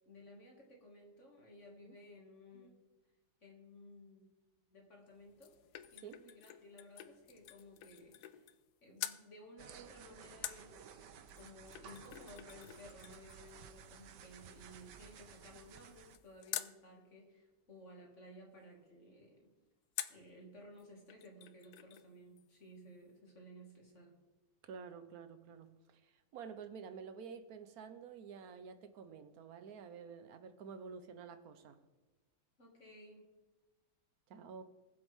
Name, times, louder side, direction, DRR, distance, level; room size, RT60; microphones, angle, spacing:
voice 1, 0.1-2.9 3.4-4.3 4.7-5.6 5.9-8.5 8.8-19.5 20.1-24.2 32.6-33.3, equal, 45° left, 2.7 m, -57 dB
sound 1, 5.1-8.7 9.0-9.2 10.4-16.8 20.0-20.3 20.8-20.9 21.1-22.1 22.4-22.5, left 12 dB, 70° left, 1.1 m, -48 dB
sound 2, 9.6-16.2, right 7 dB, 80° right, 1.4 m, -56 dB
voice 2, 24.6-31.8 34.3-34.6, right 6 dB, 65° right, 1.3 m, -50 dB
20.0 x 7.7 x 3.6 m
omnidirectional pair, 1.8 m